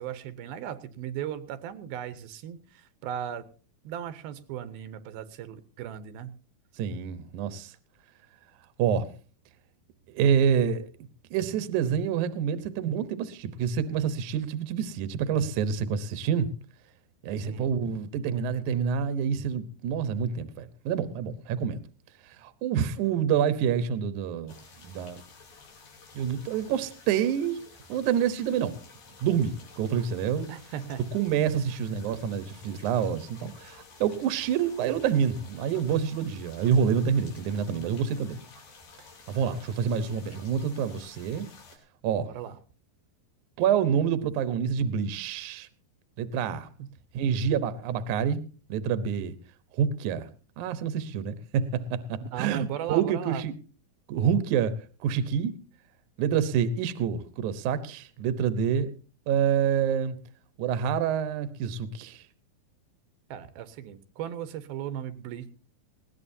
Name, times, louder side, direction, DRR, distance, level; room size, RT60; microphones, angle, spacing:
voice 1, 0.0-3.4 3.8-6.4 17.4-17.7 30.5-31.0 42.3-42.6 52.3-53.4 63.3-65.5, right 9 dB, 85° right, 2.8 m, -37 dB
voice 2, 6.8-7.7 8.8-9.1 10.1-10.9 11.3-16.5 17.2-21.8 22.4-24.6 24.8-25.2 26.1-27.6 27.9-28.8 29.2-30.5 31.1-38.4 39.3-41.5 42.0-42.3 43.6-45.7 46.2-46.7 47.1-48.4 48.7-49.4 49.7-50.3 50.6-53.5 54.1-55.5 56.2-58.9 59.3-60.2 60.6-62.2, right 8 dB, 70° right, 2.2 m, -27 dB
sound 1, 24.5-41.8, left 4 dB, 70° left, 5.0 m, -52 dB
20.0 x 17.0 x 2.7 m
omnidirectional pair, 4.2 m